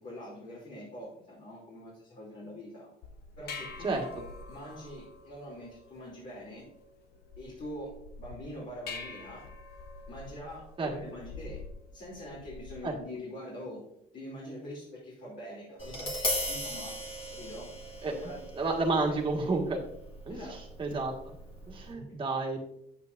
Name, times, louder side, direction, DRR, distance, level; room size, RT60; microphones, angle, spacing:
voice 1, 0.0-2.9 3.4-4.0 4.5-6.7 7.4-9.4 10.1-11.6 11.9-13.8 14.1-17.0 17.3-17.7 18.1-18.4 18.9-19.1 20.3-20.6 21.9-22.2, equal, 50° left, -6 dB, 3.1 m, -44 dB
sound 1, 3.0-13.0, left 4 dB, 75° left, 1.0 m, -46 dB
Tap, 15.8-21.9, left 1 dB, 35° left, 2.2 m, -38 dB
voice 2, 18.6-19.8 20.3-21.4 21.7-22.6, right 3 dB, 30° right, 0 dB, 1.9 m, -31 dB
8.7 x 8.3 x 2.7 m, 0.75 s
cardioid pair, 110°, 17 cm